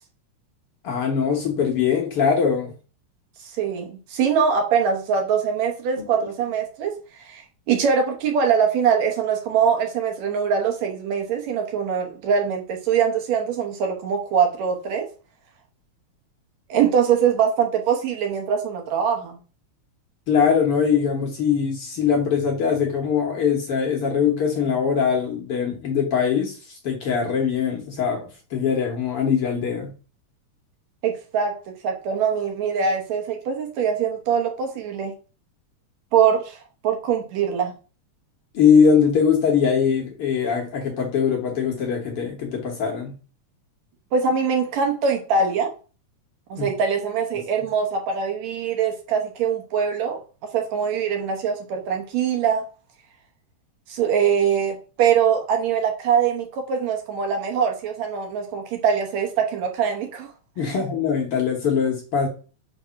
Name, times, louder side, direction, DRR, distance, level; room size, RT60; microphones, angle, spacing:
voice 1, 0.8-2.7 20.3-29.9 38.5-43.1 46.6-46.7 60.6-62.3, left 6 dB, 60° left, 1 dB, 1.7 m, -22 dB
voice 2, 3.6-6.9 7.3-15.1 16.7-19.4 31.0-31.6 31.8-35.1 36.1-36.6 36.8-37.7 44.1-45.7 46.5-50.2 50.5-52.6 53.9-60.3 60.6-60.7, right 7 dB, 70° right, 3 dB, 2.1 m, -23 dB
5.0 x 3.4 x 5.6 m, 0.36 s
omnidirectional pair, 3.4 m